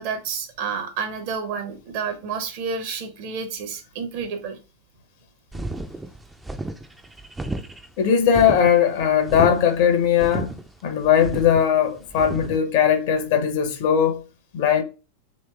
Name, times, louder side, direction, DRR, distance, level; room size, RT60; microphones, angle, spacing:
voice 1, 0.0-4.6, right 5 dB, 50° right, 0.9 m, -30 dB
sound 1, 5.5-12.6, right 2 dB, 10° right, 0.5 m, -33 dB
voice 2, 8.0-14.2 14.5-14.8, left 8 dB, 50° left, 0.8 m, -19 dB
3.2 x 2.9 x 3.3 m
figure-of-eight pair, 90°, 0 cm